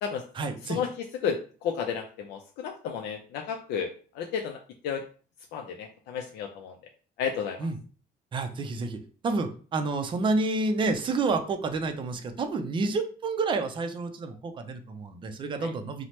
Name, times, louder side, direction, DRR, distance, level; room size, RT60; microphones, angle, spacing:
voice 1, 0.3-0.8 7.6-7.8 8.3-16.1, right 3 dB, 30° right, 7 dB, 0.4 m, -29 dB
voice 2, 1.2-5.0 5.5-6.8 7.2-7.7 15.6-15.7, left 7 dB, 80° left, 2 dB, 0.4 m, -32 dB
2.8 x 2.0 x 3.1 m, 0.40 s
cardioid pair, 110°, 17 cm